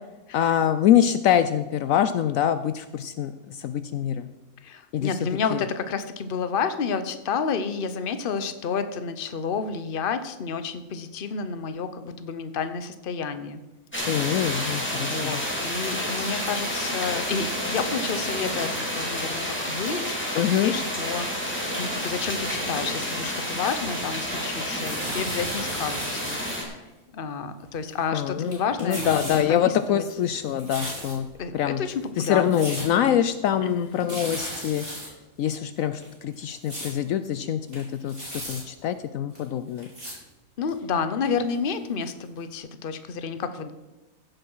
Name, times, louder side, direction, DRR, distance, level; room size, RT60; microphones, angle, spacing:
voice 1, 0.3-4.3 4.9-5.2 5.5-5.6 14.1-15.4 20.3-20.7 28.1-31.3 31.5-31.8 32.2-35.1 35.4-39.9, left 10 dB, 75° left, 11 dB, 0.9 m, -24 dB
voice 2, 4.6-13.6 14.9-26.8 27.1-30.0 31.4-33.2 33.6-34.0 40.1-40.2 40.6-43.7, left 5 dB, 45° left, 11 dB, 0.9 m, -30 dB
sound 1, 13.9-26.6, equal, 10° left, 2.7 m, -30 dB
sound 2, 23.2-24.2 24.5-26.6 26.8-26.9 27.7-28.2 28.4-29.4 29.8-31.4 31.9-32.0 32.2-32.9 33.2-33.3 33.6-33.7 33.9-35.1 35.5-35.6 35.9-36.9 37.3-37.4 37.6-38.6 39.3-39.4 39.8-40.1 40.7-40.8 41.5-41.6 42.0-42.1 42.4-42.5, right 1 dB, 40° right, 5.1 m, -36 dB
15.5 x 7.1 x 5.5 m, 1.1 s
omnidirectional pair, 1.5 m